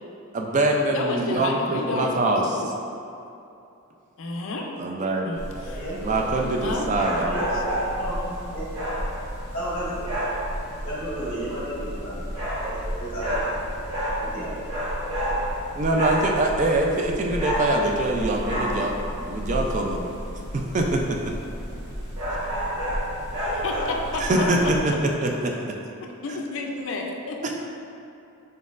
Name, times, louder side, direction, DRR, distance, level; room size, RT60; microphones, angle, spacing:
voice 1, 0.3-2.4 4.8-5.3 6.0-7.4 15.8-18.9 19.2-20.0 20.5-21.2 24.2-24.9 25.2-25.5 27.4-27.5, right 2 dB, 35° right, 1 dB, 0.3 m, -24 dB
voice 2, 0.9-2.5 4.2-4.7 5.2-5.4 6.6-6.9 7.5-7.6 23.5-24.2 24.6-25.0 26.2-27.5, left 3 dB, 60° left, 1 dB, 0.4 m, -30 dB
sound 1, 5.4-24.9, equal, 90° right, 1.2 m, -30 dB
voice 3, 5.6-6.5 7.2-8.7 9.5-10.3 10.8-12.3 12.6-13.4 14.2-14.5 15.1-15.2, equal, 35° left, -9 dB, 0.9 m, -33 dB
4.2 x 3.9 x 2.4 m, 2.7 s
head